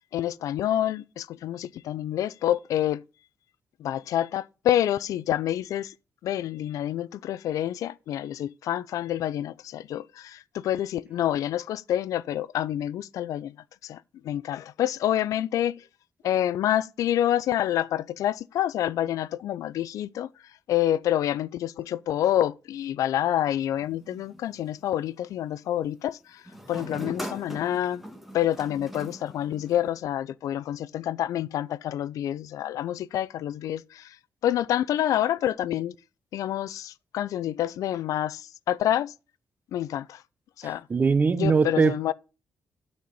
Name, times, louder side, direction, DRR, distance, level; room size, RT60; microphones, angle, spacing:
voice 1, 0.1-3.0 3.8-5.9 6.2-13.6 13.8-15.8 16.2-20.3 20.7-26.4 26.7-28.0 28.3-34.2 34.4-35.9 36.3-39.1 39.7-40.2 40.6-40.9 41.3-42.1, left 12 dB, 85° left, 0.4 m, -27 dB
sound 1, 23.7-25.0 26.5-30.0, equal, 5° right, 1.4 m, -41 dB
voice 2, 40.6-42.0, right 5 dB, 30° right, 0.5 m, -22 dB
9.2 x 4.3 x 6.9 m
cardioid pair, 115°, 6 cm